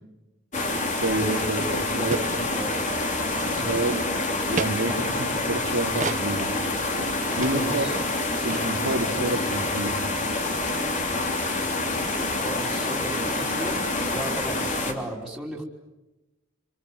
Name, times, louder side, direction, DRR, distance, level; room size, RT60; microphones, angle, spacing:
sound 1, 0.5-14.9, left 2 dB, 40° left, 3.3 m, -27 dB
voice 1, 1.0-2.1 3.4-4.1 4.5-6.5 7.4-7.9 8.4-10.0, right 2 dB, 90° right, 3 dB, 3.2 m, -28 dB
voice 2, 2.0-2.9 3.5-3.8 7.5-8.0 12.4-13.8 14.1-15.6, right 1 dB, ahead, -4 dB, 3.6 m, -35 dB
sound 2, 2.1-2.3 2.7-2.9 3.3-3.9 4.6-4.7 6.0-6.2 6.8-6.9 7.4-7.6 7.8-7.9 8.1-8.2 8.5-8.7, right 3 dB, 40° right, 1.4 m, -32 dB
27.0 x 26.5 x 8.0 m, 1.1 s
head